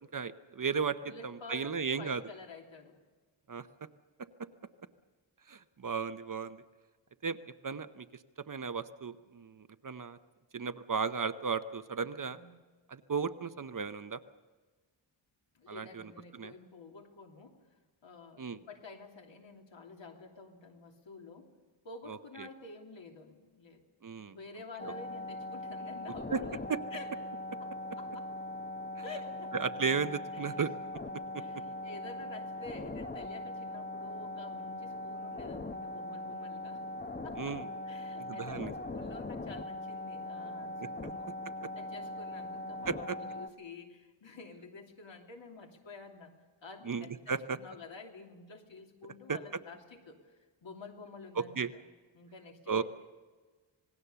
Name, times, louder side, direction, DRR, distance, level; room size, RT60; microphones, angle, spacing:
voice 1, 0.1-1.0 1.2-2.2 3.5-3.7 5.5-6.6 7.2-7.4 7.6-8.1 8.5-10.2 10.5-12.4 12.9-14.2 15.7-16.0 16.3-16.5 18.4-18.6 22.1-22.5 24.0-24.4 24.8-24.9 26.3-26.4 26.7-26.8 29.5-30.7 31.3-31.4 37.4-37.7 38.3-38.7 41.0-41.1 42.9-43.2 46.8-47.6 49.3-49.4 51.4-51.7 52.7-52.8, right 5 dB, 40° right, 11 dB, 0.8 m, -34 dB
voice 2, 1.0-3.0 12.2-12.5 15.5-17.6 18.0-21.5 21.8-26.6 26.9-27.1 27.6-27.7 28.0-28.3 29.0-29.5 30.3-30.6 31.4-36.8 37.2-37.6 37.9-41.3 41.8-46.3 46.6-51.6 52.1-52.8, left 3 dB, 65° left, 2 dB, 3.1 m, -50 dB
sound 1, 24.8-43.5, left 1 dB, 20° left, 0.9 m, -40 dB
27.0 x 19.5 x 6.9 m, 1.4 s
wide cardioid pair, 160°, 48 cm